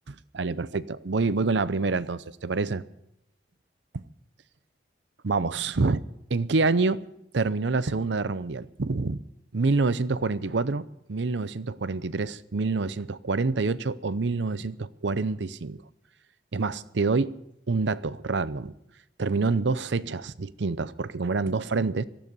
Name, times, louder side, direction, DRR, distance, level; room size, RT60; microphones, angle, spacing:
voice 1, 0.3-2.8 5.2-6.0 6.3-7.0 7.3-9.2 9.5-15.8 16.5-17.4 17.7-18.7 19.2-22.0, right 3 dB, 80° right, 0.7 m, -27 dB
17.5 x 13.5 x 5.4 m
head